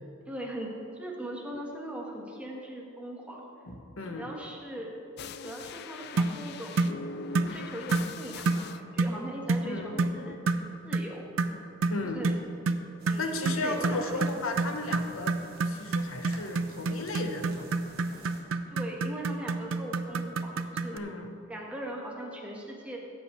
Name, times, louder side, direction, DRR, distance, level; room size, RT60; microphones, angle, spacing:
voice 1, 0.3-3.4 4.0-4.9 5.4-6.9 7.3-11.3 12.0-12.4 13.1-14.1 18.7-21.0 21.5-23.0, right 1 dB, 5° right, -2 dB, 1.4 m, -40 dB
voice 2, 3.7-4.3 9.6-9.9 11.9-12.2 13.2-15.4 15.6-17.7 20.9-21.4, left 2 dB, 90° left, 5 dB, 1.0 m, -35 dB
sound 1, 5.2-8.8 9.7-10.5, left 5 dB, 50° left, 0.3 m, -42 dB
sound 2, 6.2-6.4 6.8-7.0 7.3-7.6 7.9-8.1 8.5-8.7 9.0-9.2 9.5-9.7 10.0-10.2 10.5-10.7 10.9-11.1 11.4-21.0, right 3 dB, 80° right, 0.5 m, -28 dB
sound 3, 13.0-18.4, right 2 dB, 50° right, 1.6 m, -51 dB
17.0 x 7.8 x 3.2 m, 2.6 s
head